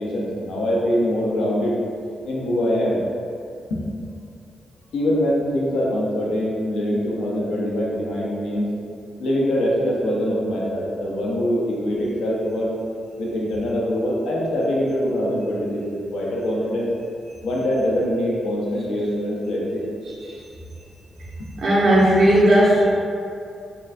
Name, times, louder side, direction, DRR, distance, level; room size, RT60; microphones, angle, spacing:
voice 1, 0.0-1.8 2.3-3.0 3.7-4.1 4.9-8.7 9.2-12.7 13.2-16.9 17.4-19.8 21.4-21.5, equal, 90° left, -4 dB, 0.6 m, -23 dB
voice 2, 21.6-22.8, right 1 dB, 70° right, -8 dB, 0.9 m, -16 dB
5.3 x 2.6 x 2.4 m, 2.5 s
cardioid pair, 65°, 0 cm